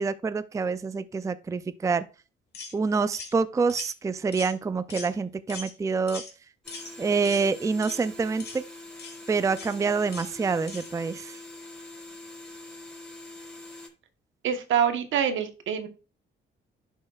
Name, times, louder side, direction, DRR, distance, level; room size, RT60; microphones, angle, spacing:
voice 1, 0.0-2.0 2.7-6.2 7.0-8.6 9.3-11.4, right 4 dB, 15° right, 0.4 m, -27 dB
sound 1, 2.5-2.7 3.1-3.3 3.7-3.9 4.3-4.6 4.9-5.1 5.5-5.7 6.1-6.3 6.7-6.9 7.2-7.5 7.8-8.1 8.4-8.6 9.0-9.2 9.6-9.8 10.1-10.3 10.7-10.9, left 5 dB, 55° left, 2.7 m, -40 dB
sound 2, 6.6-13.9, left 2 dB, 5° left, 4.1 m, -44 dB
voice 2, 14.4-15.9, right 8 dB, 75° right, 1.2 m, -25 dB
11.0 x 6.4 x 2.4 m
cardioid pair, 90°, 20 cm